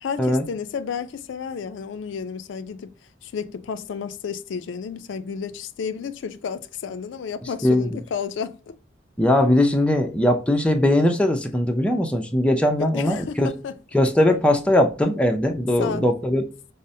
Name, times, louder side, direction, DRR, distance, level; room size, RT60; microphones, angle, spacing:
voice 1, 0.0-2.9 3.2-8.7 12.8-13.8 15.8-16.1, left 6 dB, 70° left, 0.3 m, -32 dB
voice 2, 9.2-13.5 13.9-16.4, left 1 dB, 5° left, 0.4 m, -20 dB
5.2 x 2.0 x 2.6 m
head